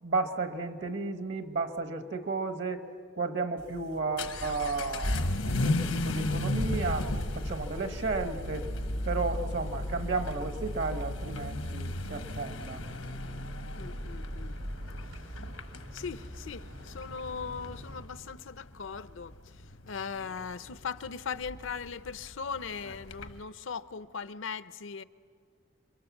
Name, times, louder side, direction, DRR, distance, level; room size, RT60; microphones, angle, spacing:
voice 1, 0.0-2.8 3.1-8.7 9.0-12.8, right 3 dB, 60° right, 1.1 m, -33 dB
Vehicle / Accelerating revving vroom, 3.6-23.4, left 1 dB, 90° left, 1.3 m, -35 dB
sound 1, 4.2-18.0, equal, 90° right, 4.2 m, -43 dB
voice 2, 13.7-14.6 15.0-15.4 15.9-25.0, left 6 dB, 70° left, 0.6 m, -39 dB
28.5 x 22.5 x 7.2 m
head